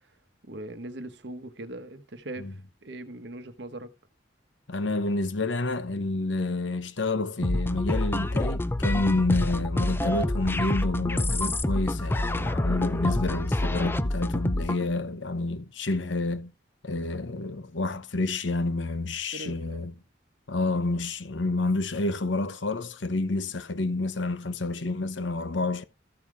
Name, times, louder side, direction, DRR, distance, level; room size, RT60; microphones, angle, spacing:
voice 1, 0.4-3.9 19.3-19.8, right 1 dB, 65° right, 1.1 m, -40 dB
voice 2, 4.7-16.5 16.8-19.9 20.5-25.8, left 2 dB, 80° left, 1.0 m, -29 dB
sound 1, 7.4-14.9, left 1 dB, 10° left, 0.4 m, -27 dB
14.0 x 5.7 x 4.8 m
head